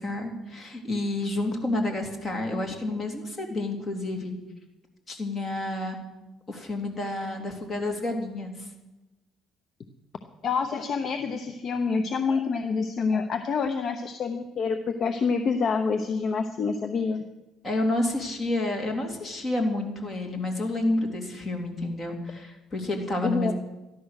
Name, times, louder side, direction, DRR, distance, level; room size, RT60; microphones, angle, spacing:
voice 1, 0.0-4.3 5.1-6.0 6.5-8.7 17.6-23.5, left 2 dB, 25° left, 2 dB, 3.1 m, -29 dB
voice 2, 10.4-17.2 23.2-23.5, left 5 dB, 45° left, 7 dB, 1.0 m, -27 dB
14.0 x 11.5 x 6.6 m, 1.0 s
cardioid pair, 115°, 0 cm